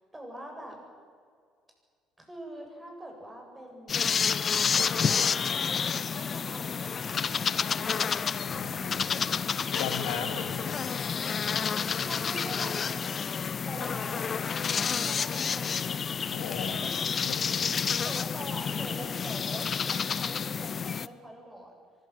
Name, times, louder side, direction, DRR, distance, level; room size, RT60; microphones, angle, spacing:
voice 1, 0.1-0.8 2.2-4.3 5.0-7.4 12.1-14.4 15.0-15.9 16.7-16.9 18.0-21.7, equal, 15° right, 1 dB, 7.9 m, -44 dB
sound 1, 3.9-21.1, left 6 dB, 40° left, 0.6 m, -29 dB
voice 2, 8.3-9.3 9.7-10.9 16.3-16.8 17.3-18.0, left 7 dB, 70° left, 6 dB, 2.5 m, -38 dB
23.5 x 14.5 x 9.3 m, 2.1 s
figure-of-eight pair, 55°, 0 cm